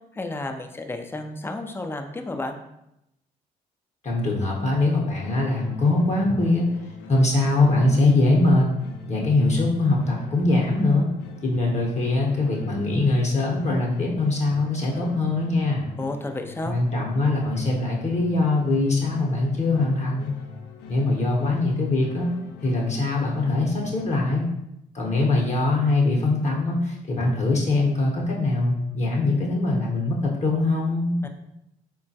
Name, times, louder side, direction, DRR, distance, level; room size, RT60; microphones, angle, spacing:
voice 1, 0.1-2.6 16.0-16.8 31.2-31.3, left 2 dB, 15° left, 5 dB, 0.4 m, -32 dB
voice 2, 4.0-6.7 7.1-8.7 9.1-11.1 11.4-15.9 16.6-20.3 20.9-22.3 22.6-24.5 24.9-31.2, left 2 dB, 40° left, -2 dB, 0.8 m, -22 dB
sound 1, 5.2-24.4, left 6 dB, 75° left, 0.4 m, -44 dB
3.6 x 2.2 x 2.6 m, 0.84 s
hypercardioid pair, 50°, 18 cm